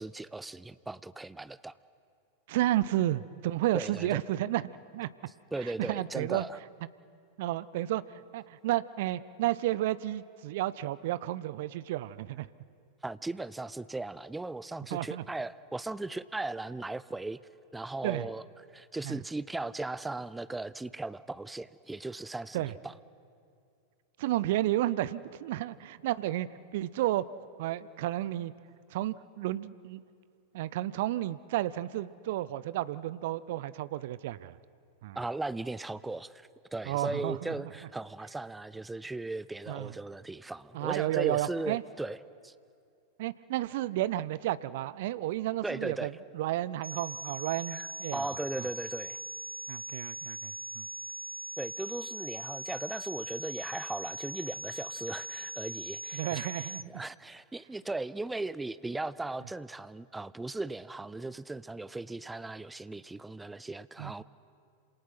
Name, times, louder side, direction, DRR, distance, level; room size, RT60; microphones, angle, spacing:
voice 1, 0.0-1.8 3.7-4.2 5.5-6.6 13.0-17.4 17.7-18.4 18.7-22.9 35.2-42.2 42.4-42.5 45.6-46.1 47.7-49.2 51.6-64.2, right 2 dB, 10° right, 17 dB, 0.6 m, -37 dB
voice 2, 2.5-4.6 4.9-5.1 5.6-6.4 7.4-12.5 14.9-15.2 18.0-18.3 19.0-19.2 22.5-22.7 24.2-27.2 27.6-28.5 28.9-30.0 30.5-34.6 35.0-35.2 36.9-37.7 39.7-39.9 40.7-41.8 43.2-48.3 48.6-48.7 49.7-50.9 56.1-56.8 64.0-64.2, right 14 dB, 55° right, 18 dB, 0.6 m, -32 dB
sound 1, 46.8-56.8, right 1 dB, 85° right, 0.8 m, -41 dB
27.5 x 27.0 x 5.9 m, 2.4 s
figure-of-eight pair, 90°, 0 cm